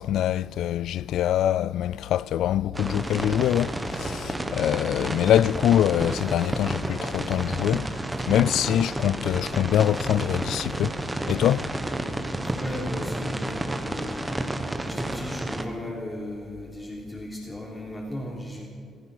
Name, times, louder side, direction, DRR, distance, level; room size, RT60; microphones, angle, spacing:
voice 1, 0.0-7.9 8.3-11.0 11.3-11.7, left 11 dB, 80° left, 0.3 m, -24 dB
sound 1, 2.7-15.7, right 1 dB, 15° right, 1.4 m, -31 dB
voice 2, 12.6-14.3 14.8-18.7, left 1 dB, 15° left, 3.5 m, -36 dB
15.5 x 15.0 x 6.1 m
cardioid pair, 90°, 0 cm